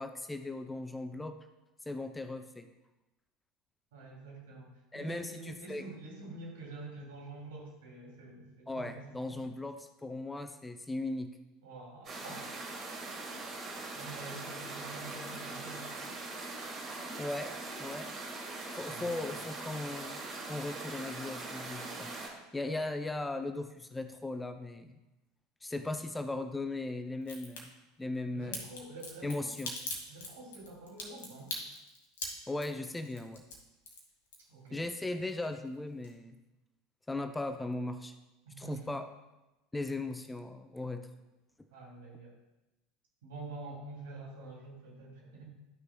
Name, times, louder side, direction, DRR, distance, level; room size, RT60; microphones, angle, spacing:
voice 1, 0.0-1.4 1.9-2.7 4.9-5.8 8.7-11.3 17.2-17.5 17.8-18.1 18.7-20.2 20.5-22.2 22.5-25.0 25.6-27.7 28.0-28.6 29.2-29.7 32.5-33.4 34.7-36.4 37.1-38.1 38.6-39.0 39.7-41.1, left 2 dB, 10° left, 8 dB, 0.5 m, -38 dB
voice 2, 3.9-9.6 11.6-12.4 13.9-16.1 18.9-19.1 28.3-29.5 30.1-31.5 34.5-34.8 38.4-39.0 41.7-42.3 43.2-45.5, right 2 dB, 65° right, -3 dB, 2.7 m, -47 dB
sound 1, 12.0-22.3, right 3 dB, 35° right, 2.4 m, -41 dB
Crack, 27.2-27.6 28.5-34.8 35.1-35.7 36.0-36.1, left 3 dB, 70° left, 1.9 m, -41 dB
12.5 x 6.3 x 2.2 m, 1.0 s
figure-of-eight pair, 75°, 0 cm